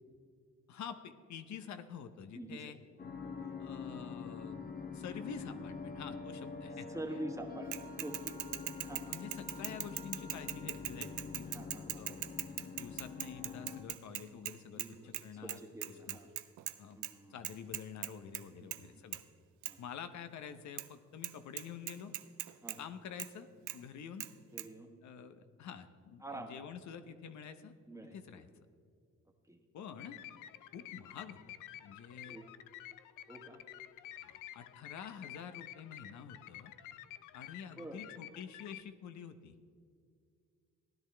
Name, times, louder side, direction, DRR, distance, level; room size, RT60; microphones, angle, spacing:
voice 1, 0.7-2.8 3.6-4.6 4.9-7.3 9.1-11.5 12.0-12.2 12.5-16.2 16.8-17.0 17.3-19.2 19.8-22.1 22.8-24.3 25.0-27.7 28.1-28.5 29.7-30.2 30.7-31.4 31.8-32.4 34.2-36.7 37.3-39.5, left 7 dB, 70° left, 10 dB, 0.9 m, -48 dB
voice 2, 2.3-2.7 3.2-3.5 6.9-9.2 11.5-12.2 14.7-16.3 16.9-17.4 18.6-19.1 19.7-19.8 22.6-22.8 24.5-24.9 26.2-26.7 27.9-28.4 29.5-29.6 32.2-32.4 33.3-33.6 37.8-38.0, right 1 dB, 10° right, 3 dB, 1.4 m, -47 dB
sound 1, 3.0-13.8, left 5 dB, 30° left, 1.0 m, -45 dB
Bicycle / Mechanisms, 7.7-14.9 15.1-15.2 15.5-16.7 17.0-17.1 17.4-18.4 18.7-18.9 19.1-19.2 19.6-19.7 20.8-20.9 21.2-21.3 21.6-22.8 23.2-23.3 23.7-23.8 24.2-24.3 24.6-24.7, right 15 dB, 75° right, 0.5 m, -40 dB
sound 2, 30.0-38.8, left 13 dB, 90° left, 0.5 m, -51 dB
16.0 x 11.0 x 3.4 m, 2.2 s
cardioid pair, 90°, 30 cm